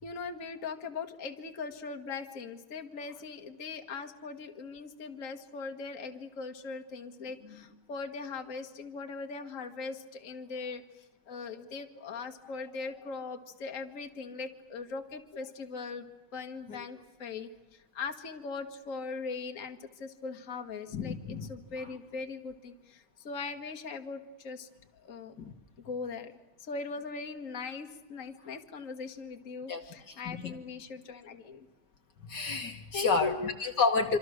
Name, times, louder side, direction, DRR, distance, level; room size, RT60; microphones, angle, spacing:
voice 1, 0.0-25.4 25.8-31.7 32.9-33.5, left 4 dB, 40° left, 5 dB, 1.8 m, -40 dB
voice 2, 20.9-21.5 25.4-25.5 29.7-29.8 30.1-30.5 32.3-34.2, left 4 dB, 60° left, 5 dB, 1.9 m, -30 dB
26.5 x 26.0 x 6.4 m, 1.1 s
omnidirectional pair, 2.2 m